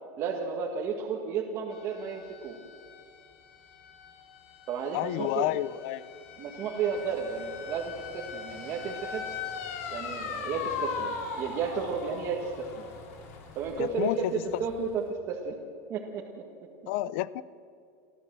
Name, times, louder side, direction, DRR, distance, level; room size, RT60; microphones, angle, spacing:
voice 1, 0.2-2.5 4.7-5.5 6.4-9.2 9.9-12.9 13.6-14.3 14.6-15.6 15.9-16.4, right 6 dB, 35° right, -1 dB, 1.6 m, -33 dB
sound 1, 1.7-15.1, left 6 dB, 80° left, 3.4 m, -40 dB
voice 2, 4.9-6.1 13.8-14.6 16.9-17.4, left 15 dB, 55° left, 18 dB, 0.5 m, -30 dB
sound 2, 6.9-13.8, left 2 dB, 35° left, 3.1 m, -53 dB
29.0 x 13.0 x 7.5 m, 2.4 s
supercardioid pair, 170°, 8 cm